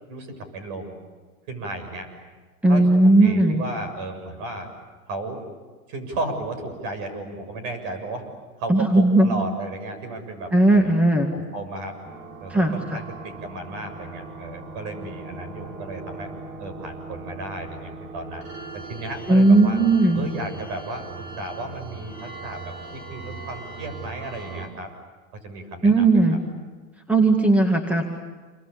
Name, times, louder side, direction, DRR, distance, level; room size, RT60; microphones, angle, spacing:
voice 1, 0.1-1.0 1.5-2.1 2.7-4.7 5.1-5.4 5.9-8.3 8.6-10.9 11.3-12.0 12.4-16.3 16.6-18.5 18.7-19.8 20.1-24.9 25.4-26.2, right 2 dB, 50° right, 8 dB, 7.2 m, -34 dB
voice 2, 2.6-3.6 8.7-9.3 10.5-11.3 12.5-13.0 19.3-20.3 25.8-26.4 27.1-28.0, right 2 dB, 5° right, 4 dB, 2.2 m, -17 dB
sound 1, 12.0-24.7, right 3 dB, 70° right, 5.1 m, -39 dB
28.0 x 24.0 x 8.5 m, 1.4 s
hypercardioid pair, 130°, 44 cm